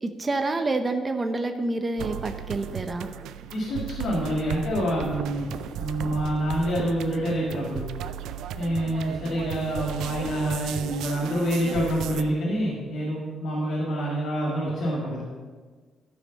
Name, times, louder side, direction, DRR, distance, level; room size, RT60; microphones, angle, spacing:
voice 1, 0.0-3.1, right 2 dB, 25° right, 6 dB, 0.7 m, -28 dB
sound 1, 2.0-12.2, right 10 dB, 85° right, 0.4 m, -35 dB
voice 2, 3.5-5.5 5.8-7.9 8.5-15.2, equal, 80° left, -5 dB, 2.1 m, -27 dB
12.5 x 5.4 x 5.4 m, 1.5 s
cardioid pair, 90°, 0 cm